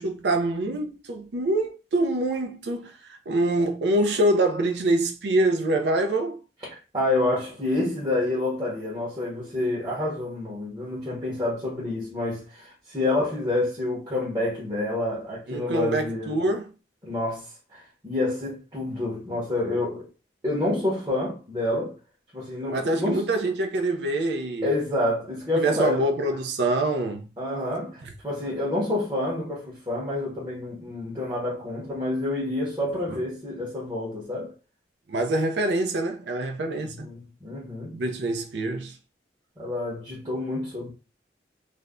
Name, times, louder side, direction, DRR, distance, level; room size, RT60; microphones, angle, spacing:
voice 1, 0.0-6.4 15.5-16.7 22.7-24.7 25.5-27.3 33.1-33.2 35.1-37.1 37.9-39.0, right 1 dB, 75° right, 0.4 m, -25 dB
voice 2, 6.6-16.3 17.0-20.1 20.4-21.9 22.3-23.2 24.6-26.1 27.4-34.5 36.8-38.0 39.6-40.9, left 2 dB, 20° right, 0.9 m, -28 dB
2.5 x 2.1 x 3.5 m
head